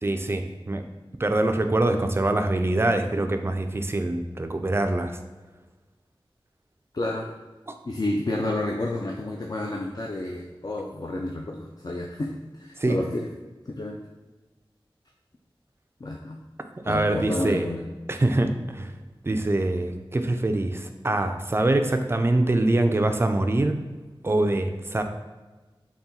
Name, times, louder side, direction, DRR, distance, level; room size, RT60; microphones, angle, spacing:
voice 1, 0.0-0.8 1.2-5.2 12.8-13.0 16.8-17.7 18.1-18.9 19.2-23.8 24.2-25.0, right 2 dB, 25° right, 6 dB, 0.4 m, -24 dB
voice 2, 6.9-7.3 7.9-12.3 12.6-13.3 13.7-14.0 16.0-16.4 16.8-17.8, left 2 dB, 45° left, -1 dB, 0.4 m, -30 dB
4.0 x 2.3 x 3.6 m, 1.2 s
wide cardioid pair, 45°, 9 cm